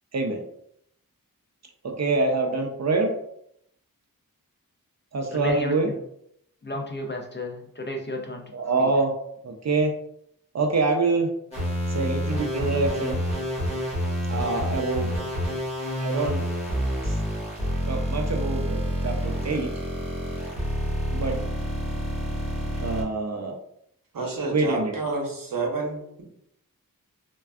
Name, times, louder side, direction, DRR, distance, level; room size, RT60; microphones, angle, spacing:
voice 1, 1.8-3.1 5.1-5.9 8.5-9.1 9.4-9.9 10.5-11.3 11.9-13.2 14.3-15.1 16.0-16.5 17.0-17.2 17.9-19.7 21.1-21.4 22.8-23.6 24.5-25.0, right 3 dB, 50° right, 3 dB, 0.4 m, -25 dB
voice 2, 5.3-5.8 6.6-8.4 8.8-8.9, left 1 dB, 35° left, 3 dB, 0.4 m, -32 dB
sound 1, 11.5-23.0, equal, 15° left, 1.3 m, -28 dB
voice 3, 24.1-26.2, right 3 dB, 70° right, 0 dB, 0.8 m, -29 dB
3.4 x 2.2 x 2.3 m, 0.73 s
wide cardioid pair, 75°, 35 cm